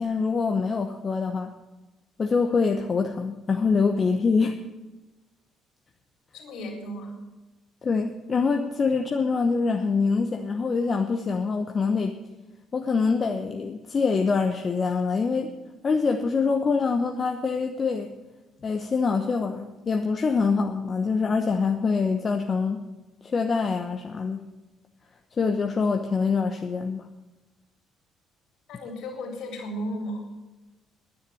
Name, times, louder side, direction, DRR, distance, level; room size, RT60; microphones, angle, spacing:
voice 1, 0.0-1.5 2.2-4.6 7.8-12.2 12.7-15.5 15.8-18.1 18.6-22.8 23.2-24.4 25.4-27.1, left 4 dB, 40° left, 5 dB, 1.0 m, -25 dB
voice 2, 6.3-7.2 28.7-30.3, equal, 65° left, 0 dB, 3.9 m, -34 dB
10.0 x 9.6 x 9.1 m, 1.1 s
hypercardioid pair, 50°, 0 cm